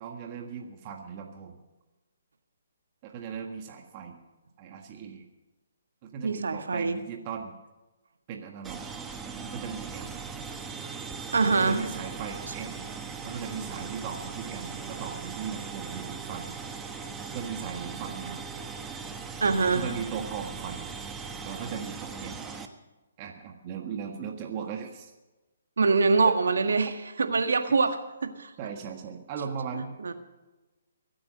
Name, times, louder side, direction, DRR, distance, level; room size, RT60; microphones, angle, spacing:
voice 1, 0.0-1.6 3.0-4.2 4.6-5.2 6.0-7.6 8.3-8.8 9.4-10.2 11.5-12.9 13.2-16.5 17.3-18.4 19.7-20.9 21.4-22.5 23.2-25.1 28.6-30.1, right 7 dB, 30° right, 3 dB, 1.6 m, -38 dB
voice 2, 6.2-7.0 11.3-11.8 19.4-19.8 25.8-28.0 28.2-28.5 30.0-30.1, right 4 dB, 85° right, 7 dB, 1.7 m, -24 dB
sound 1, 8.6-22.7, right 5 dB, 10° right, 1.1 m, -39 dB
24.0 x 8.7 x 5.3 m, 1.1 s
hypercardioid pair, 155°, 0 cm